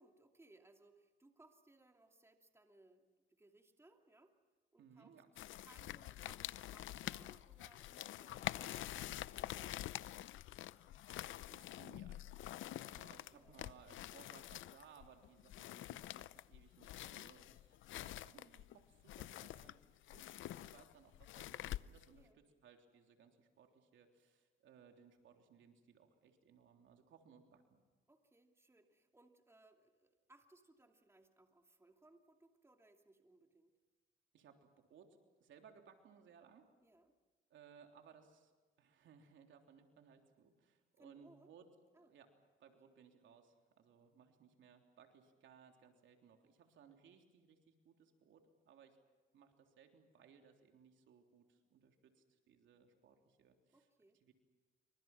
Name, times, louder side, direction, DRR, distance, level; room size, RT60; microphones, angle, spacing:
voice 1, 0.0-4.3 4.7-5.1 5.6-10.2 13.3-13.6 22.2-22.4 28.1-33.7 36.8-37.1 41.0-41.5 41.9-42.2 42.7-42.8 53.7-54.2, right 2 dB, 15° right, 4 dB, 2.7 m, -67 dB
voice 2, 4.8-5.3 11.0-27.8 34.3-36.7 37.5-41.7 42.0-42.3 42.6-49.0 49.3-53.9 54.2-54.3, right 7 dB, 75° right, 4 dB, 3.5 m, -64 dB
sound 1, 5.4-22.2, left 14 dB, 75° left, 0.7 m, -47 dB
28.0 x 25.0 x 6.1 m, 1.3 s
cardioid pair, 90°, 20 cm